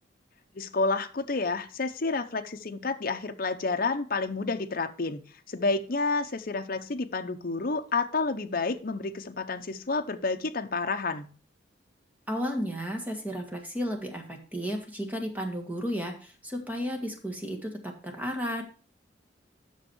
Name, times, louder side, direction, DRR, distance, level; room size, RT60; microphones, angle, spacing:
voice 1, 0.5-5.2 5.5-11.3, left 3 dB, 50° left, 7 dB, 0.8 m, -30 dB
voice 2, 12.3-18.6, equal, 10° right, 1 dB, 1.6 m, -33 dB
8.3 x 6.4 x 4.4 m, 0.39 s
head